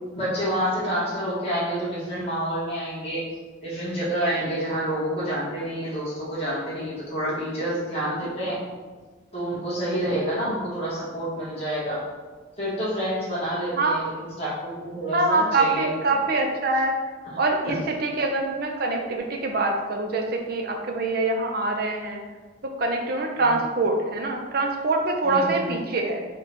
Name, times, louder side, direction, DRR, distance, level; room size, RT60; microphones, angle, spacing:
voice 1, 0.1-3.2 3.6-8.6 9.3-12.0 12.6-15.9 23.4-23.6 25.2-25.7, right 1 dB, 30° left, -7 dB, 1.2 m, -28 dB
voice 2, 15.1-17.0 17.4-22.2 22.6-26.2, right 2 dB, 50° right, 2 dB, 0.5 m, -24 dB
3.6 x 2.3 x 4.3 m, 1.4 s
head